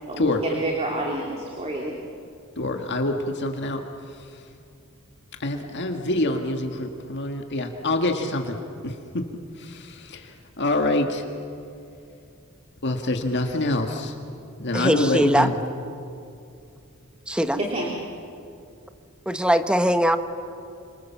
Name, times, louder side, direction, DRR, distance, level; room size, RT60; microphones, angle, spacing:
voice 1, 0.1-2.0 17.5-17.9, right 1 dB, 30° right, -1 dB, 2.6 m, -28 dB
voice 2, 2.6-3.8 5.4-8.6 8.8-9.0 9.6-11.2 12.8-14.1 14.6-15.6, left 2 dB, 55° left, 4 dB, 1.8 m, -26 dB
voice 3, 14.7-15.5 17.3-17.6 19.3-20.2, equal, 5° right, 9 dB, 1.0 m, -21 dB
28.5 x 26.0 x 7.3 m, 2.5 s
head